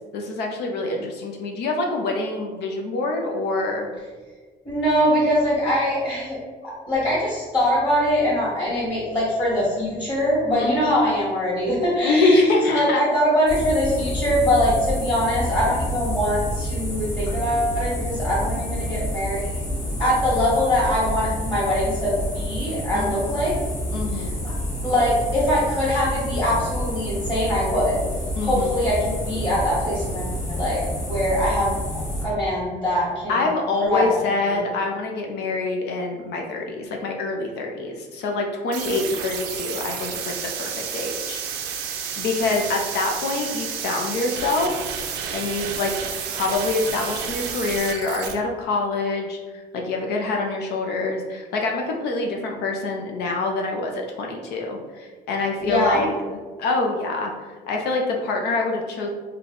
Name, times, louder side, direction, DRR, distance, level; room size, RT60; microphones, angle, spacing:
voice 1, 0.1-3.9 10.6-10.8 12.0-13.0 22.9-23.2 23.9-24.3 28.4-28.7 33.3-41.4 42.2-44.7 45.3-45.9 46.3-57.3 57.7-59.1, left 3 dB, 75° left, 2 dB, 0.5 m, -25 dB
voice 2, 4.6-12.5 12.7-19.6 20.0-23.5 24.1-24.5 24.8-28.0 28.4-30.8 31.1-31.7 32.2-33.4 33.8-34.2 34.5-34.6 55.6-56.0, equal, 25° left, -10 dB, 1.5 m, -23 dB
sound 1, 13.5-32.2, equal, 40° left, 1.3 m, -28 dB
sound 2, 38.7-48.3, right 7 dB, 90° right, 0.5 m, -31 dB
3.2 x 2.2 x 3.8 m, 1.4 s
cardioid pair, 110°, 17 cm